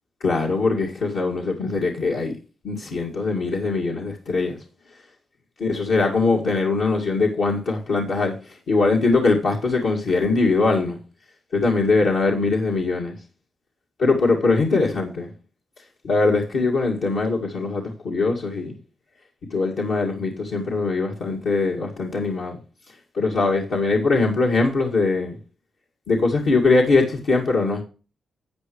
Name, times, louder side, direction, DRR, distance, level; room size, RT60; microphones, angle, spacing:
voice 1, 0.2-2.4 2.6-4.6 5.6-11.0 11.5-13.2 14.0-15.3 16.0-18.7 19.5-22.6 23.1-25.4 26.1-27.8, left 3 dB, 80° left, 2.1 m, -21 dB
12.0 x 8.1 x 3.1 m
cardioid pair, 70°, 0 cm